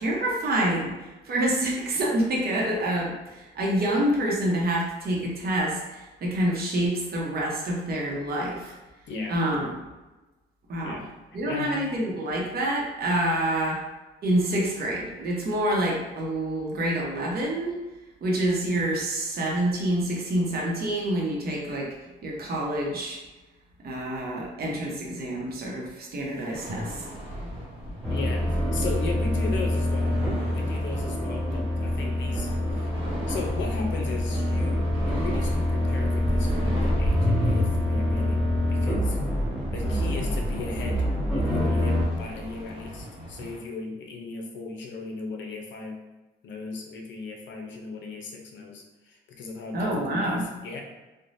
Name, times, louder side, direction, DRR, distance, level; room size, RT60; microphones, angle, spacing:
voice 1, 0.0-8.7 9.3-9.7 10.7-11.0 11.3-13.8 14.2-17.7 18.2-21.9 22.2-23.2 23.8-27.1 49.7-50.5, right 1 dB, 50° right, -2 dB, 0.8 m, -27 dB
voice 2, 9.1-9.4 10.8-11.1 11.5-11.7 28.1-30.2 30.5-32.9 33.3-39.3 39.7-41.0 41.3-46.0 46.4-50.8, left 4 dB, 70° left, 2 dB, 0.6 m, -37 dB
sound 1, 26.5-43.6, equal, 30° right, 1.0 m, -33 dB
sound 2, 28.0-42.0, left 1 dB, ahead, 0.9 m, -26 dB
3.1 x 2.2 x 2.6 m, 1.1 s
cardioid pair, 90°, 20 cm